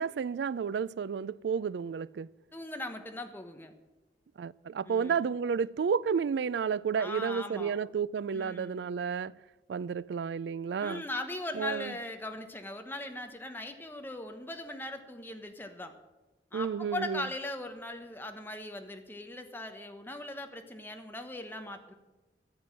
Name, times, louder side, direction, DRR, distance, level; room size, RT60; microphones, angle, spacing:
voice 1, 0.0-2.3 4.4-9.3 9.7-11.0 11.5-11.9 16.5-17.3, right 6 dB, 70° right, 0.3 m, -31 dB
voice 2, 2.5-3.7 4.9-5.2 7.0-7.7 8.3-8.8 10.8-15.9 16.5-21.9, left 2 dB, 10° left, 1.1 m, -39 dB
14.0 x 7.8 x 7.6 m
head